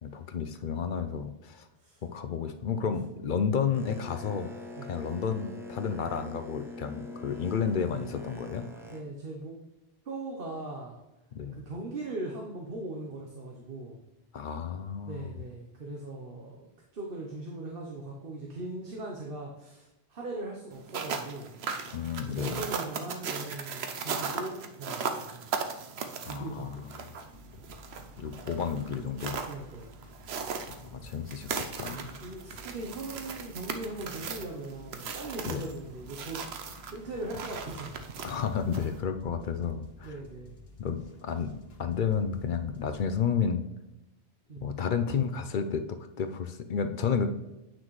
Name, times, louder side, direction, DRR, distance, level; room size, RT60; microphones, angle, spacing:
voice 1, 0.0-1.7 2.0-4.5 4.9-8.6 11.3-11.6 14.3-15.3 21.9-22.6 26.2-26.8 28.2-29.4 30.7-32.2 35.5-35.6 38.2-40.1 40.8-41.5 41.8-43.7 44.6-47.3, left 6 dB, 60° left, 8 dB, 0.7 m, -31 dB
voice 2, 1.8-2.3 4.8-4.9 8.9-9.6 10.0-11.0 11.5-14.0 15.0-21.5 22.2-25.4 26.3-26.8 29.4-29.9 31.8-36.4 36.9-38.0 40.0-40.6 44.5-44.7, right 2 dB, 60° right, 0 dB, 1.2 m, -40 dB
Boat Water vehicle, 3.7-9.0, left 2 dB, 5° right, 0.6 m, -43 dB
sound 1, 20.7-39.0, right 5 dB, 85° right, 1.0 m, -38 dB
sound 2, 27.2-43.2, left 3 dB, 75° left, 1.3 m, -53 dB
9.0 x 6.1 x 3.1 m, 0.95 s
omnidirectional pair, 1.0 m